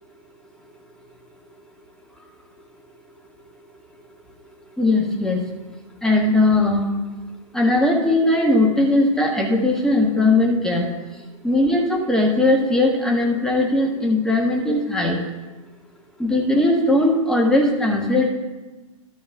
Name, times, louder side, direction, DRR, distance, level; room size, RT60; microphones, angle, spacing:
voice 1, 4.8-5.4 6.0-6.9 7.5-10.8 11.4-15.2 16.2-18.3, left 2 dB, 5° left, 0 dB, 1.3 m, -19 dB
12.5 x 6.5 x 3.6 m, 1.2 s
figure-of-eight pair, 115°, 18 cm